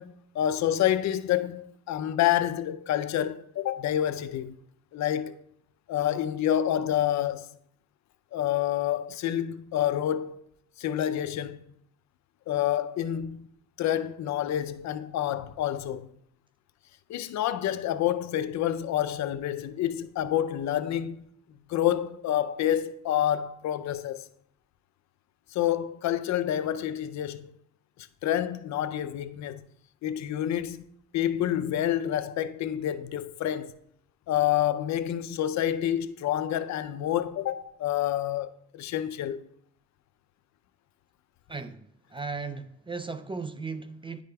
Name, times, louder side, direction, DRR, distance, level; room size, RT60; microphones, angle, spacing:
voice 1, 0.0-4.5 4.9-5.4 5.9-7.5 8.3-10.4 10.8-11.6 12.5-13.5 13.8-16.1 17.1-21.3 21.7-24.3 25.5-27.5 28.2-29.6 30.0-30.8 31.1-33.7 34.3-39.4, left 11 dB, 65° left, 0.5 m, -28 dB
voice 2, 41.5-41.9 42.1-44.2, right 4 dB, 20° right, 0.3 m, -36 dB
10.5 x 5.0 x 2.2 m
cardioid pair, 90°, 30 cm